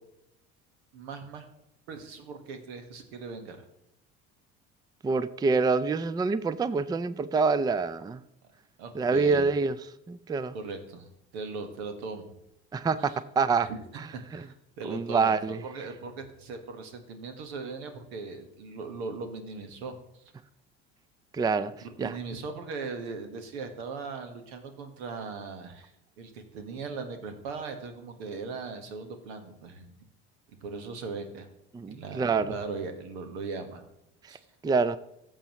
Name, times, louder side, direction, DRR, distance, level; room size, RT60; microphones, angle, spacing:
voice 1, 0.9-1.4 1.9-3.6 8.8-9.4 10.5-12.3 13.0-13.2 13.6-13.8 14.1-20.0 21.8-25.9 26.2-29.9 30.6-31.5 31.9-33.8 34.3-34.4, right 4 dB, 85° right, 6 dB, 1.5 m, -39 dB
voice 2, 5.0-8.2 8.9-9.8 10.1-10.5 12.7-13.7 14.0-14.1 14.3-14.5 14.8-15.6 21.3-21.7 22.0-22.2 31.7-32.5 34.2-34.3 34.6-35.0, right 4 dB, 15° right, 15 dB, 0.4 m, -26 dB
14.0 x 7.2 x 3.0 m, 0.81 s
hypercardioid pair, 75°, 31 cm